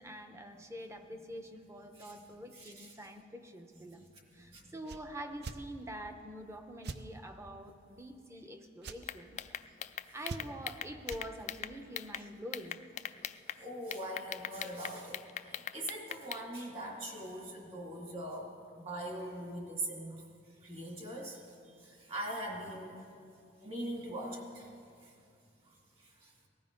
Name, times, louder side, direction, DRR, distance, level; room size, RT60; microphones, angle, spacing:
voice 1, 0.0-4.1 4.3-9.6 10.1-12.8, equal, 15° right, 6 dB, 0.8 m, -46 dB
voice 2, 2.5-2.9 4.5-4.6 13.6-15.2 15.7-18.5 18.8-20.2 20.6-21.4 22.1-22.9 23.6-24.7, right 1 dB, 30° right, 0 dB, 2.3 m, -41 dB
sound 1, 4.8-5.0 5.4-5.6 6.8-7.0 8.8-9.0 10.3-10.7 11.1-11.3, right 3 dB, 55° right, 0.6 m, -42 dB
sound 2, 9.0-12.2 12.5-13.6 13.9-16.4, left 10 dB, 35° left, 0.3 m, -40 dB
18.5 x 13.5 x 5.2 m, 2.4 s
head